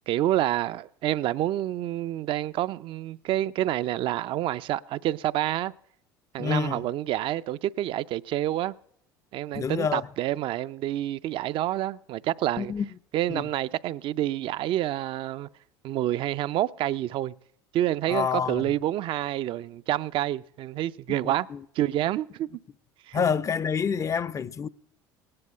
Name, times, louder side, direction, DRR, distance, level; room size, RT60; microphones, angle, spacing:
voice 1, 0.1-5.7 6.3-8.7 9.3-12.7 13.1-15.5 15.8-17.3 17.7-21.5 21.8-22.5 23.1-23.2, right 13 dB, 55° right, 0.5 m, -28 dB
voice 2, 6.4-6.8 9.5-10.0 12.6-12.9 13.3-13.4 18.1-18.6 21.2-21.6 23.1-24.7, left 6 dB, 30° left, 0.5 m, -27 dB
18.0 x 9.8 x 5.5 m
hypercardioid pair, 70°, 11 cm